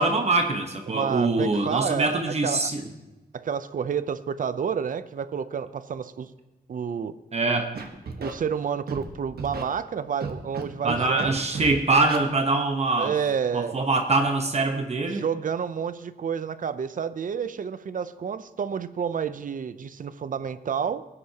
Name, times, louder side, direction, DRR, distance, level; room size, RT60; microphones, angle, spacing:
voice 1, 0.0-2.8 7.3-7.7 10.8-13.1 13.5-15.2, right 3 dB, 40° right, 4 dB, 1.1 m, -24 dB
voice 2, 0.9-2.7 3.3-6.3 6.7-7.1 8.2-11.4 13.0-13.8 15.1-21.1, right 7 dB, 55° right, 14 dB, 0.6 m, -29 dB
Scratching (performance technique), 7.7-8.3 8.9-9.0 9.4-9.6 10.2-10.6 10.9-11.3 11.5-11.7 12.0-12.2, right 4 dB, 75° right, 1.3 m, -33 dB
19.0 x 9.8 x 2.9 m, 1.1 s
wide cardioid pair, 120°, 16 cm